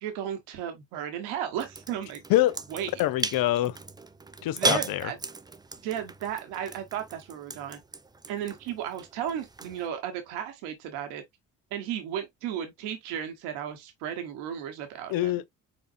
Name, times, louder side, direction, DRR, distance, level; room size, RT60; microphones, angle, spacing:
voice 1, 0.0-2.2 2.7-2.9 4.4-5.2 5.8-7.8 8.3-11.2 11.7-15.3, right 9 dB, 80° right, 1.1 m, -34 dB
sound 1, 1.6-9.9, right 3 dB, 10° right, 0.4 m, -36 dB
voice 2, 3.0-3.8 4.4-5.1 15.1-15.5, left 15 dB, 60° left, 0.6 m, -25 dB
4.6 x 3.7 x 2.5 m
hypercardioid pair, 55°, 40 cm